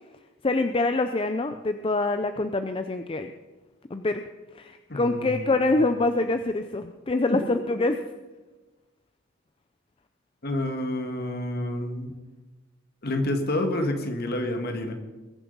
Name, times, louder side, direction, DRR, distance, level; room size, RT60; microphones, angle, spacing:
voice 1, 0.4-3.3 3.9-4.2 4.5-8.0, left 2 dB, 25° left, 8 dB, 0.5 m, -25 dB
voice 2, 4.9-5.7 10.4-12.1 13.0-14.9, left 1 dB, 50° left, 5 dB, 1.8 m, -29 dB
21.5 x 7.5 x 5.4 m, 1.2 s
head